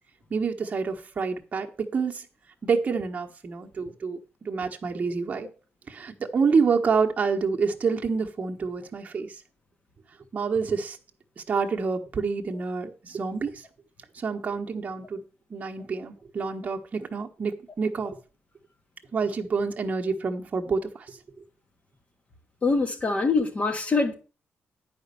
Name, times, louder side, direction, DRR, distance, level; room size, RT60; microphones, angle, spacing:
voice 1, 0.3-2.2 2.6-4.2 4.4-5.5 5.9-9.3 10.3-11.0 11.4-13.6 14.1-15.2 15.5-18.2 19.1-21.2, right 5 dB, 30° right, 1.3 m, -27 dB
voice 2, 22.6-24.1, left 3 dB, 30° left, 1.6 m, -24 dB
10.0 x 5.2 x 6.9 m
cardioid pair, 150°, 5 cm